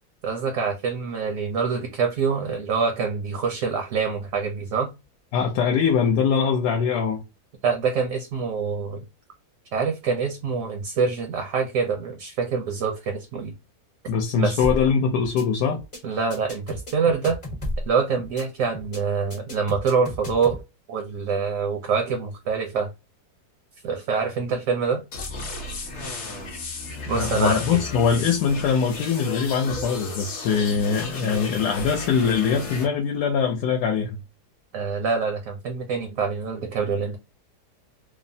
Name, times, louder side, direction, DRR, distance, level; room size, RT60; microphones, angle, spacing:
voice 1, 0.2-4.9 7.6-9.0 9.7-13.5 14.3-14.6 16.0-17.4 17.9-20.6 20.9-22.9 23.8-25.0 27.1-27.8 34.7-37.2, right 5 dB, 70° right, 0.8 m, -25 dB
voice 2, 5.3-7.2 14.1-15.8 27.1-34.2, left 6 dB, 75° left, 1.1 m, -22 dB
sound 1, 14.6-14.9 15.2-15.4 15.7-16.0 16.3-17.9 18.2-18.4 18.7-19.0 19.3-20.6, equal, 30° left, 0.6 m, -32 dB
sound 2, 25.1-32.9, left 3 dB, 55° left, 0.9 m, -34 dB
3.1 x 2.0 x 2.6 m
omnidirectional pair, 1.8 m